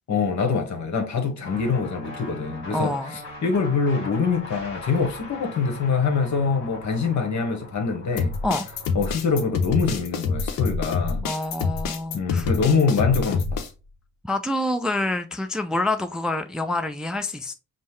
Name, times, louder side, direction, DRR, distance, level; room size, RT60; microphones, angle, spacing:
voice 1, 0.1-8.3 8.9-11.3 12.1-13.6, left 5 dB, 55° left, 1.2 m, -24 dB
sound 1, 1.4-8.9, left 1 dB, 40° left, 1.8 m, -40 dB
voice 2, 2.7-3.1 8.4-8.6 11.2-12.5 14.2-17.5, left 2 dB, ahead, 0.5 m, -27 dB
sound 2, 8.2-13.7, left 5 dB, 70° left, 0.7 m, -26 dB
5.3 x 2.1 x 3.1 m
hypercardioid pair, 40°, 34 cm